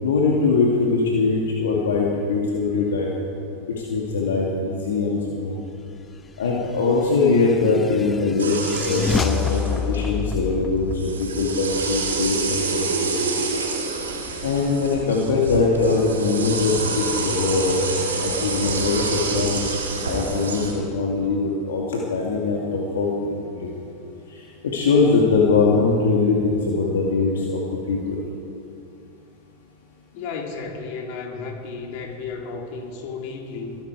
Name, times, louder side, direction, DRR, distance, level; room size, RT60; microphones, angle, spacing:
voice 1, 0.0-3.1 3.7-5.6 6.4-10.9 11.2-13.1 14.4-17.8 18.2-19.7 20.1-23.3 23.5-23.7 24.3-27.6 27.9-28.2, left 4 dB, 75° left, -2 dB, 2.0 m, -22 dB
sound 1, 7.0-12.6, left 6 dB, 20° left, 0.3 m, -29 dB
sound 2, 8.4-10.1 10.9-20.7, right 4 dB, 85° right, 3.6 m, -27 dB
voice 2, 30.1-33.8, left 4 dB, 55° left, 1 dB, 3.0 m, -33 dB
23.0 x 11.5 x 4.7 m, 2.6 s
hypercardioid pair, 90°, 0 cm